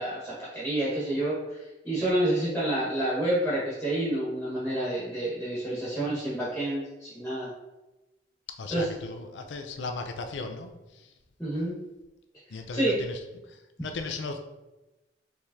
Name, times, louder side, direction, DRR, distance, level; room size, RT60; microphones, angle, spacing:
voice 1, 0.0-7.5 8.7-8.8 11.4-11.7 12.7-13.0, right 1 dB, ahead, -9 dB, 1.4 m, -29 dB
voice 2, 8.6-11.1 11.5-11.6 12.5-13.2 13.5-14.4, left 3 dB, 80° left, 6 dB, 0.5 m, -37 dB
4.8 x 3.5 x 2.7 m, 1.0 s
head